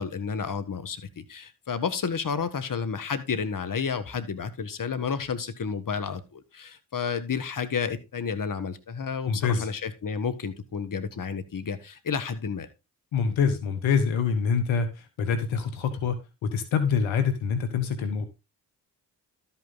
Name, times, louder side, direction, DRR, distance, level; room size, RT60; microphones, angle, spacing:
voice 1, 0.0-12.7, left 6 dB, 45° left, 11 dB, 1.6 m, -31 dB
voice 2, 9.3-9.7 13.1-18.3, left 6 dB, 80° left, 9 dB, 1.4 m, -26 dB
12.5 x 5.9 x 4.0 m, 0.26 s
hypercardioid pair, 45°, 46 cm